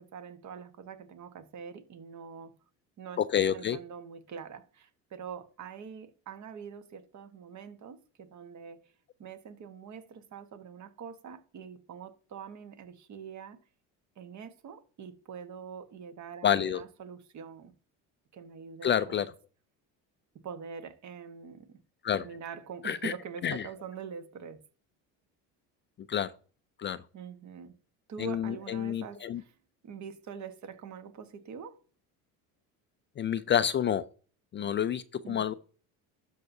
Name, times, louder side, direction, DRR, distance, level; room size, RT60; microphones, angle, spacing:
voice 1, 0.0-2.5 3.0-8.8 9.2-13.6 14.2-17.7 18.3-19.2 20.4-21.8 22.1-24.6 27.1-27.7 28.1-29.6 29.8-31.8 34.6-34.8 35.2-35.5, right 6 dB, 50° right, 1.3 m, -44 dB
voice 2, 3.2-3.8 16.4-16.8 18.8-19.3 22.0-22.2 22.8-23.1 23.4-23.7 26.1-26.3 26.8-27.0 28.2-29.4 33.2-34.0 34.5-35.5, left 9 dB, 30° left, 0.4 m, -28 dB
12.0 x 5.7 x 2.7 m
supercardioid pair, 105°, 37 cm